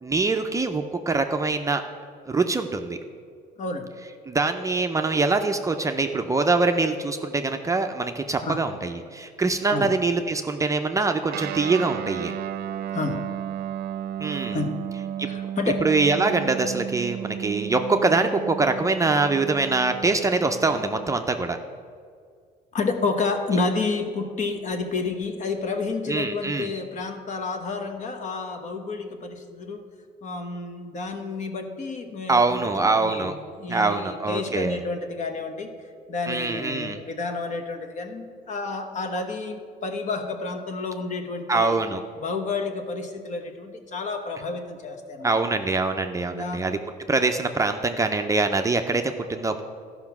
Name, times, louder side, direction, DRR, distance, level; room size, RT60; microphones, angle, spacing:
voice 1, 0.0-1.8 2.3-3.0 4.3-12.3 14.2-14.6 15.2-15.3 15.8-21.6 26.1-26.7 32.3-33.3 33.7-34.7 36.3-37.0 41.5-42.0 45.2-46.8 47.1-49.6, right 3 dB, 20° right, 5 dB, 0.5 m, -24 dB
voice 2, 3.6-3.9 8.4-8.6 9.7-9.9 12.9-13.3 14.5-14.8 15.2-15.8 22.7-29.9 30.2-35.7 36.1-41.8 42.2-45.3 46.3-46.7, left 3 dB, 45° left, 6 dB, 1.2 m, -30 dB
Guitar, 11.3-21.2, right 10 dB, 70° right, 0.6 m, -34 dB
13.0 x 5.8 x 5.9 m, 2.1 s
cardioid pair, 110°, 17 cm